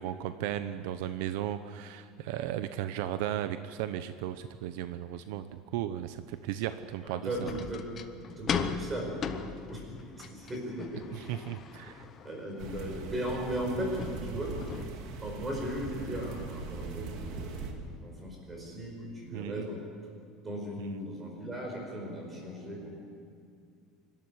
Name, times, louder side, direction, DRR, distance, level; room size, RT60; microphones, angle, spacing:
voice 1, 0.0-7.5 11.1-12.0 19.3-19.7, right 12 dB, 75° right, 11 dB, 0.8 m, -35 dB
voice 2, 7.0-7.9 8.4-11.4 11.8-11.9 12.2-14.8 15.2-19.8 20.4-22.9, equal, 15° right, 0 dB, 4.7 m, -37 dB
sound 1, 7.3-14.8, left 7 dB, 25° left, 0.9 m, -39 dB
sound 2, 12.6-17.7, right 4 dB, 50° right, 2.4 m, -40 dB
25.5 x 12.5 x 9.8 m, 2.3 s
cardioid pair, 180°, 0 cm